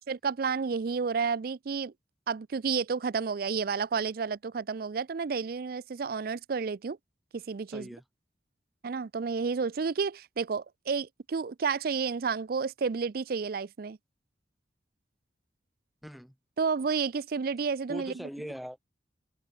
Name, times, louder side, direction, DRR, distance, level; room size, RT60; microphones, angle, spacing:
voice 1, 0.1-1.9 2.3-7.0 7.3-7.9 8.8-14.0 16.6-18.3, right 5 dB, 55° right, 0.4 m, -31 dB
voice 2, 7.7-8.0 16.0-16.3 17.9-18.8, equal, ahead, 0.5 m, -41 dB
open air
head